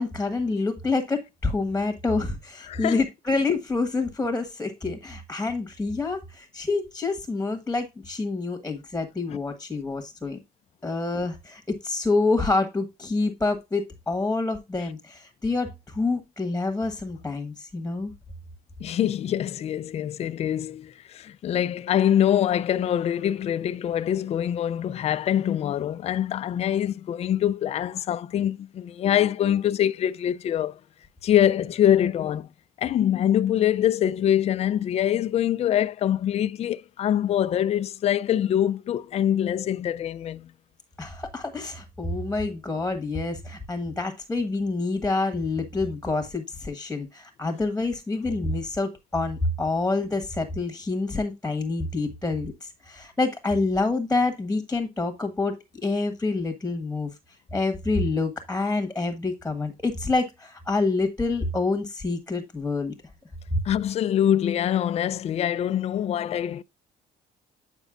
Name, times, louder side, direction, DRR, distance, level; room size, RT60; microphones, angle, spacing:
voice 1, 0.0-10.4 10.8-18.1 41.0-57.1 57.5-62.9 63.5-63.6, left 3 dB, 10° left, 1.3 m, -27 dB
voice 2, 2.7-3.0 9.3-9.4 18.8-30.8 31.2-32.5 32.8-40.5 63.6-66.6, left 10 dB, 40° left, 0.4 m, -24 dB
9.0 x 5.3 x 2.4 m
cardioid pair, 110°, 17 cm